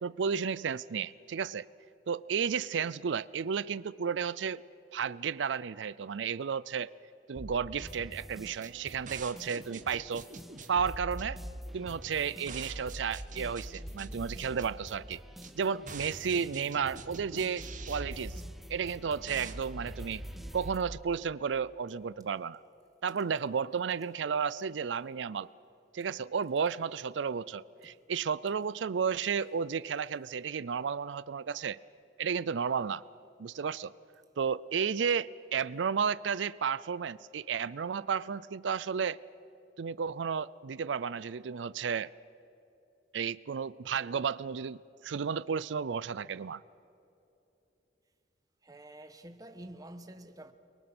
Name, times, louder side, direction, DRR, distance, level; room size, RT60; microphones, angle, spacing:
voice 1, 0.0-1.7 2.1-4.6 4.9-6.9 7.3-10.3 10.7-11.4 11.7-15.2 15.6-18.4 18.7-20.2 20.5-22.6 23.0-25.5 25.9-31.8 32.2-33.0 33.4-33.9 34.4-39.2 39.8-42.1 43.1-46.6, right 6 dB, 90° right, 0.5 m, -33 dB
sound 1, 7.4-21.0, right 2 dB, 45° right, 1.6 m, -44 dB
sound 2, 7.8-20.8, equal, ahead, 0.7 m, -50 dB
voice 2, 48.6-50.5, right 1 dB, 20° right, 1.4 m, -48 dB
30.0 x 23.0 x 6.1 m
head